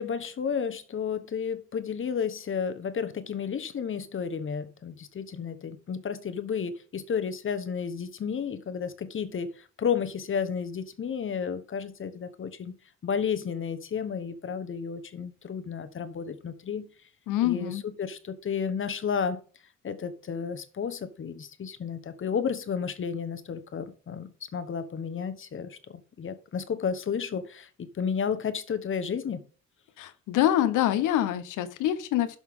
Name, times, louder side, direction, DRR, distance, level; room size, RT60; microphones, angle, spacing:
voice 1, 0.0-12.8 13.0-16.9 17.4-19.4 19.8-29.4, left 6 dB, 40° left, 1.1 m, -32 dB
voice 2, 17.3-17.8 30.0-32.3, left 12 dB, 90° left, 0.9 m, -25 dB
11.5 x 5.8 x 3.6 m
cardioid pair, 90°, 30 cm